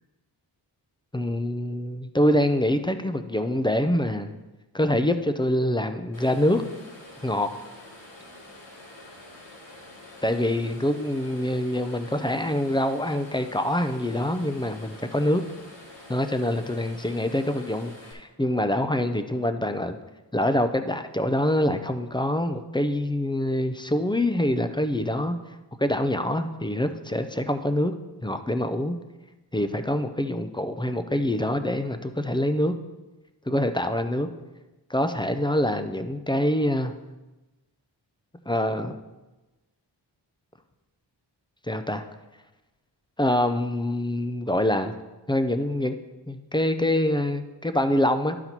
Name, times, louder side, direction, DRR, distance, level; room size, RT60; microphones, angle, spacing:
voice 1, 1.1-4.3 4.7-6.6 7.2-7.5 10.2-15.4 16.1-20.0 20.3-25.4 25.8-27.9 28.2-29.0 29.5-32.7 33.5-34.3 34.9-36.9 38.5-39.0 41.7-42.0 43.2-44.9 45.3-46.0 46.3-48.4, left 1 dB, 10° left, 8 dB, 0.4 m, -25 dB
sound 1, 6.1-18.1, left 1 dB, 75° left, 2.1 m, -47 dB
11.5 x 4.1 x 4.4 m, 1.1 s
wide cardioid pair, 75°, 45 cm